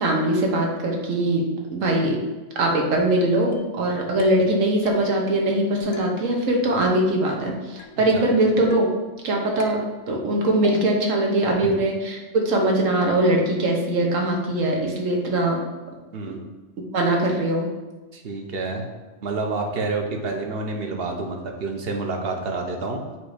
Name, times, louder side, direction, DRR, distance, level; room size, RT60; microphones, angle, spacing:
voice 1, 0.0-2.2 2.5-8.9 9.2-15.6 16.9-17.7, right 1 dB, 90° right, 0 dB, 1.4 m, -22 dB
sound 1, 3.5-3.9 4.2-4.6 4.9-5.4 5.9-6.5 6.8-7.5 7.8-8.3 8.7-9.2 9.6-10.3 10.6-11.2, left 5 dB, 90° left, 1.1 m, -36 dB
voice 2, 18.1-18.8 19.2-23.0, right 3 dB, 55° right, 3 dB, 1.0 m, -28 dB
7.5 x 2.7 x 4.9 m, 1.2 s
omnidirectional pair, 1.3 m